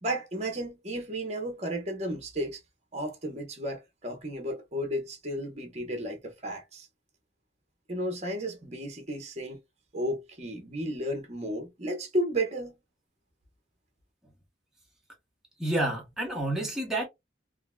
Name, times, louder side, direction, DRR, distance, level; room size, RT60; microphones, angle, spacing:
voice 1, 0.0-2.6 2.9-6.9 7.9-9.6 9.9-12.8, right 1 dB, 35° right, 1.0 m, -33 dB
voice 2, 15.6-17.1, right 1 dB, 5° right, 1.0 m, -29 dB
3.6 x 2.2 x 2.2 m
head